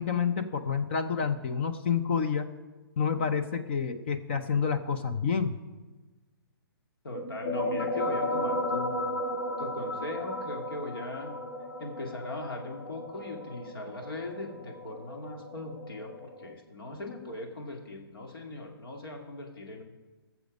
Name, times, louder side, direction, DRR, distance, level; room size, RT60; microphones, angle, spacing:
voice 1, 0.0-2.5 3.0-5.6, left 6 dB, 30° left, 9 dB, 0.5 m, -28 dB
voice 2, 7.0-9.0 9.6-11.4 11.8-19.8, left 2 dB, 65° left, 2 dB, 2.1 m, -39 dB
sound 1, 7.1-16.5, left 1 dB, 50° left, 1.6 m, -35 dB
17.0 x 7.1 x 5.2 m, 1.2 s
hypercardioid pair, 170°, 13 cm